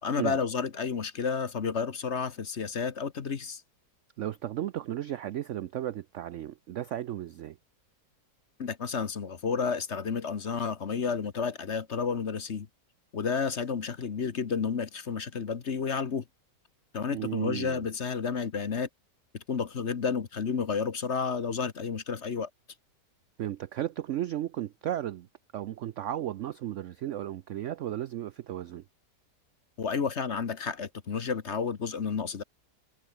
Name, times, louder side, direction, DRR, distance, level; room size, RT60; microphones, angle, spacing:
voice 1, 0.0-3.6 8.6-12.7 13.1-16.2 16.9-18.9 19.3-22.5 29.8-32.4, left 6 dB, 45° left, 1.4 m, -31 dB
voice 2, 4.2-7.6 17.1-17.9 23.4-25.3 25.5-28.8, right 12 dB, 75° right, 0.6 m, -34 dB
omnidirectional pair, 1.9 m